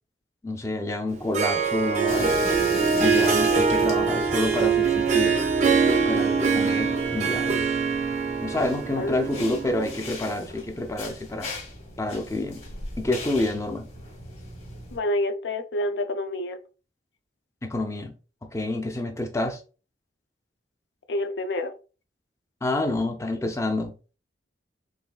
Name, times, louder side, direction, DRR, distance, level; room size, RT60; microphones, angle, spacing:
voice 1, 0.4-2.4 3.0-5.4 6.1-7.6 8.4-11.5 12.0-12.6 13.0-13.9 17.6-18.1 18.4-19.6 22.6-23.9, left 2 dB, 15° left, 0.5 m, -28 dB
Harp, 1.1-10.1, right 5 dB, 40° right, 0.5 m, -23 dB
sound 1, 2.1-15.0, left 2 dB, 35° left, 1.1 m, -37 dB
voice 2, 8.9-9.4 14.9-16.6 21.1-21.7, left 1 dB, 70° left, 0.4 m, -28 dB
4.0 x 3.2 x 2.3 m
head